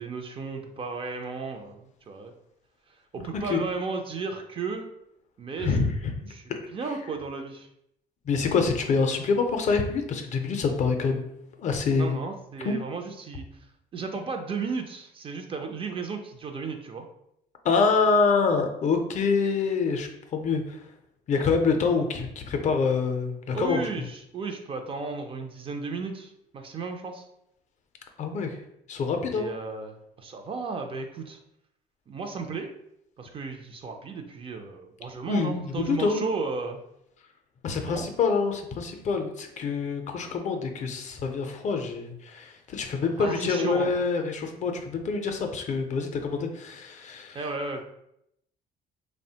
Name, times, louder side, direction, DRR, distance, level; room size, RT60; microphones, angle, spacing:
voice 1, 0.0-2.3 3.1-4.9 5.4-5.9 6.3-6.4 6.7-7.7 11.9-13.5 13.9-17.1 23.5-27.3 29.3-31.4 32.1-32.7 33.2-36.8 37.9-38.0 43.2-43.9 47.3-47.8, right 4 dB, 35° right, 5 dB, 0.3 m, -34 dB
voice 2, 5.6-6.6 8.3-11.2 11.6-12.2 12.6-12.7 17.6-20.8 21.3-23.8 28.2-28.6 28.9-29.5 35.3-36.2 37.6-47.4, left 4 dB, 45° left, 4 dB, 0.4 m, -26 dB
3.0 x 2.1 x 2.7 m, 0.77 s
cardioid pair, 110°, 17 cm